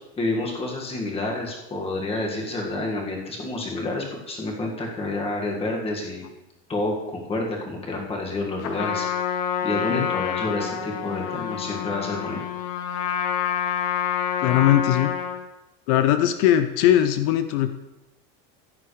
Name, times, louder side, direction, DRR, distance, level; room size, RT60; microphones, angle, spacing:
voice 1, 0.2-6.3 6.7-9.1 9.4-12.4, left 2 dB, 15° left, 0 dB, 1.9 m, -29 dB
Trumpet, 8.6-15.4, left 8 dB, 50° left, 1.1 m, -27 dB
voice 2, 14.4-15.1 15.9-17.7, left 11 dB, 75° left, 10 dB, 0.7 m, -20 dB
15.0 x 9.4 x 3.3 m, 0.97 s
cardioid pair, 165°, 33 cm